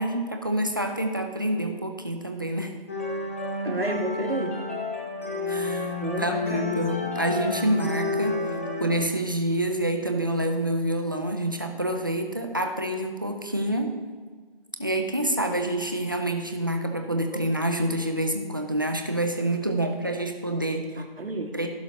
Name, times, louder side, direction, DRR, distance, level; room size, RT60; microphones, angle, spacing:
voice 1, 0.0-2.7 3.7-3.8 5.5-14.0 14.8-21.0 21.5-21.7, right 1 dB, 20° right, 4 dB, 0.5 m, -27 dB
sound 1, 2.9-8.9, left 3 dB, 15° left, 0.7 m, -30 dB
voice 2, 3.6-4.6 6.0-6.9 20.8-21.5, right 2 dB, 80° right, 3 dB, 1.7 m, -31 dB
15.5 x 6.1 x 3.0 m, 1.5 s
figure-of-eight pair, 165°, 29 cm